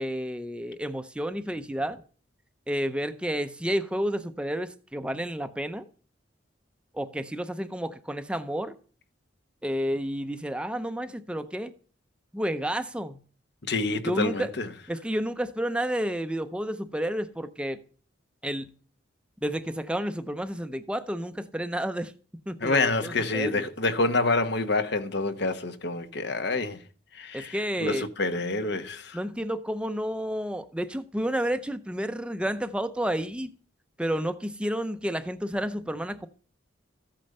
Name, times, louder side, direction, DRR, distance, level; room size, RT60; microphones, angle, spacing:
voice 1, 0.0-2.0 2.7-5.9 6.9-8.7 9.6-11.7 12.3-13.2 14.0-14.5 14.9-17.8 18.4-18.7 19.4-22.1 22.5-23.7 27.3-28.0 29.1-33.5 34.0-36.3, equal, 5° right, 0.6 m, -30 dB
voice 2, 13.6-14.7 22.6-26.8 27.1-29.2, left 3 dB, 60° left, 1.1 m, -27 dB
14.5 x 8.8 x 6.6 m
head